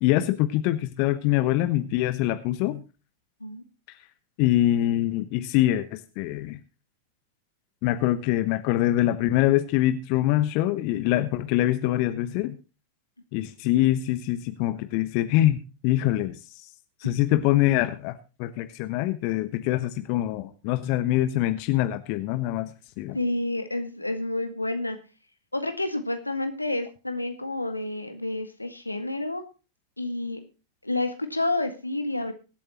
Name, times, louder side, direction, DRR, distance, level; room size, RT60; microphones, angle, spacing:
voice 1, 0.0-2.8 4.4-6.6 7.8-12.6 13.3-16.7 17.0-22.7 23.0-23.2, left 14 dB, 45° left, 12 dB, 1.0 m, -24 dB
voice 2, 23.1-25.0 25.5-29.4 30.0-30.4 30.8-32.3, left 2 dB, 85° left, 8 dB, 1.7 m, -29 dB
23.0 x 8.5 x 3.0 m, 0.33 s
figure-of-eight pair, 90°, 0 cm